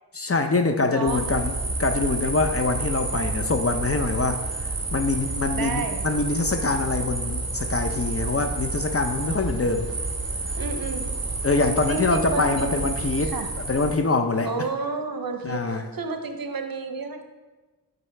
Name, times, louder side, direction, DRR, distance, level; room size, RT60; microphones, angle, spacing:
voice 1, 0.1-1.5 1.8-4.5 4.9-9.9 11.4-13.3 13.7-14.5 15.4-15.8, left 3 dB, 35° left, 6 dB, 0.5 m, -24 dB
voice 2, 0.9-1.3 5.5-6.0 10.6-11.2 11.9-12.9 13.2-13.5 14.5-17.2, right 4 dB, 60° right, 7 dB, 0.7 m, -31 dB
sound 1, 1.1-13.9, right 3 dB, 40° right, 1.2 m, -30 dB
8.6 x 4.0 x 3.3 m, 1.3 s
wide cardioid pair, 45°, 40 cm